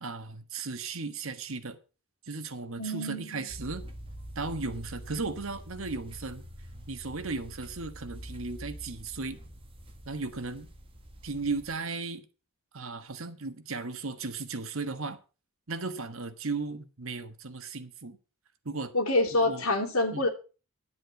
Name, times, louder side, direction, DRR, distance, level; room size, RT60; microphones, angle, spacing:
voice 1, 0.0-1.8 2.3-3.8 4.3-6.4 6.9-9.4 10.0-10.7 11.2-12.2 12.7-15.2 15.7-18.2 18.6-18.9 19.4-19.6 20.1-20.2, right 3 dB, 65° right, 1.3 m, -36 dB
voice 2, 2.8-3.5 18.9-20.3, left 2 dB, 75° left, 2.6 m, -27 dB
sound 1, 3.5-11.8, equal, 25° right, 1.5 m, -45 dB
11.5 x 7.8 x 6.5 m
head